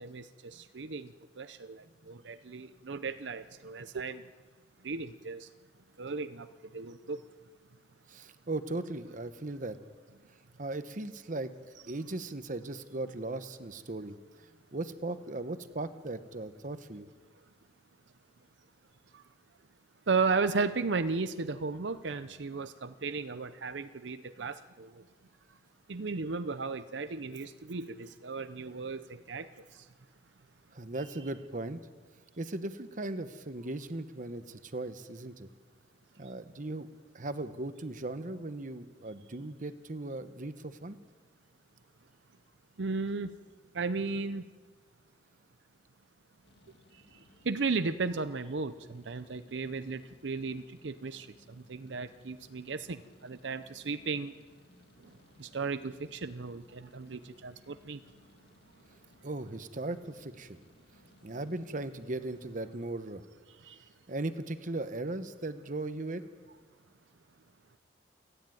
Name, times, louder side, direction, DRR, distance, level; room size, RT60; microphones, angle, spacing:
voice 1, 0.0-4.2 4.8-5.5 6.0-7.2 19.1-19.2 20.1-25.0 25.9-29.9 42.8-43.3 43.7-44.5 47.1-47.2 47.4-54.3 55.0-55.1 55.4-58.0 63.5-63.8, right 4 dB, 85° right, 11 dB, 0.7 m, -35 dB
voice 2, 8.1-9.8 10.6-11.5 11.9-14.2 14.7-17.1 30.7-31.8 32.4-35.5 36.2-36.9 37.1-41.0 59.2-60.6 61.2-63.2 64.1-66.2, right 2 dB, 45° right, 10 dB, 1.0 m, -38 dB
sound 1, 46.4-62.6, left 1 dB, 65° left, 2.2 m, -62 dB
29.0 x 10.0 x 9.2 m, 1.4 s
head